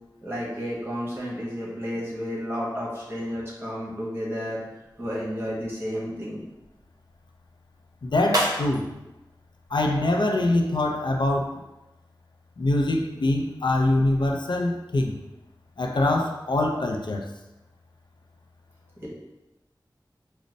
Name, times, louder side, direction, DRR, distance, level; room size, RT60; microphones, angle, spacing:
voice 1, 0.2-4.6 5.0-6.4 19.0-19.1, equal, 30° right, -6 dB, 1.3 m, -31 dB
sound 1, 4.8-10.6, right 1 dB, 50° right, 0.7 m, -35 dB
voice 2, 8.0-8.9 9.7-11.6 12.6-15.2 15.8-17.3, left 2 dB, 75° left, 2 dB, 0.4 m, -24 dB
5.1 x 2.0 x 2.5 m, 0.99 s
wide cardioid pair, 45°, 8 cm